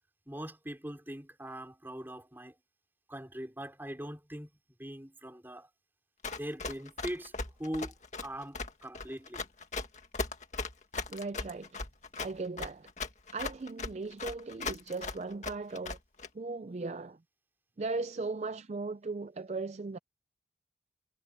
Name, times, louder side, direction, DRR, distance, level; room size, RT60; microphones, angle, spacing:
voice 1, 0.3-2.5 3.1-4.5 4.8-5.7 6.3-7.3 7.6-7.9 8.2-9.4, equal, 10° right, 4.4 m, -41 dB
Run, 6.2-16.3, left 3 dB, 40° left, 2.0 m, -38 dB
voice 2, 11.1-11.7 12.2-12.9 13.3-16.0 16.3-17.2 17.8-20.0, right 3 dB, 40° right, 0.4 m, -37 dB
head